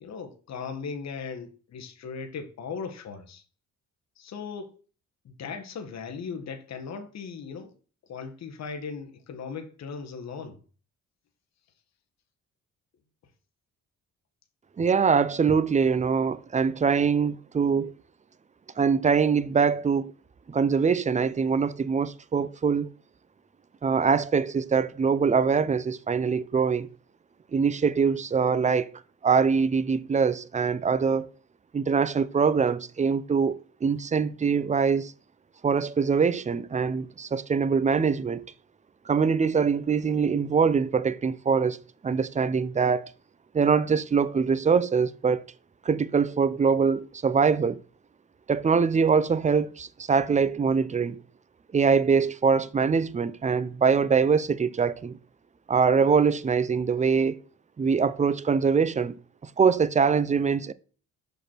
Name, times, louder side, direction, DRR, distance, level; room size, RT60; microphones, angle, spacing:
voice 1, 0.0-3.4 4.2-4.7 5.2-7.7 8.1-10.6, left 5 dB, 60° left, 1.2 m, -38 dB
voice 2, 14.8-17.9 18.8-20.1 20.5-22.9 23.8-26.9 27.5-28.9 29.2-31.3 31.7-35.1 35.6-38.4 39.1-41.8 42.0-43.1 43.5-45.4 45.8-47.8 48.5-51.2 51.7-55.2 55.7-57.4 57.8-59.2 59.6-60.7, right 5 dB, 25° right, 0.5 m, -23 dB
6.3 x 5.1 x 4.4 m
cardioid pair, 90°, 31 cm